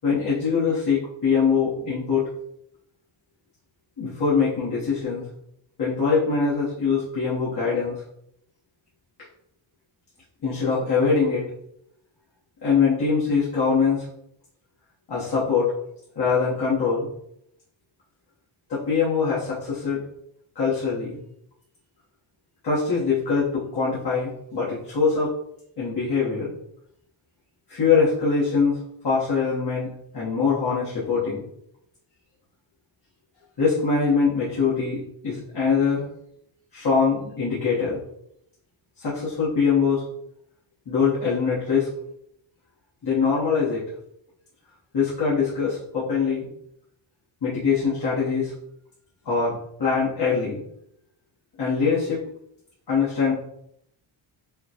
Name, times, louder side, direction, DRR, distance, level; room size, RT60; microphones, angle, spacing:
voice 1, 0.0-2.3 4.0-5.2 5.8-8.0 10.4-11.4 12.6-14.0 15.1-15.7 16.1-17.1 18.7-20.0 20.5-21.2 22.6-25.3 25.8-26.5 27.7-28.8 29.0-29.9 30.1-31.4 33.6-36.0 36.7-38.0 39.0-40.0 40.9-41.9 43.0-43.8 44.9-46.5 47.4-48.5 49.2-50.6 51.6-52.2 52.9-53.3, left 5 dB, 50° left, -9 dB, 1.3 m, -23 dB
5.6 x 2.2 x 2.9 m, 0.75 s
wide cardioid pair, 125°, 49 cm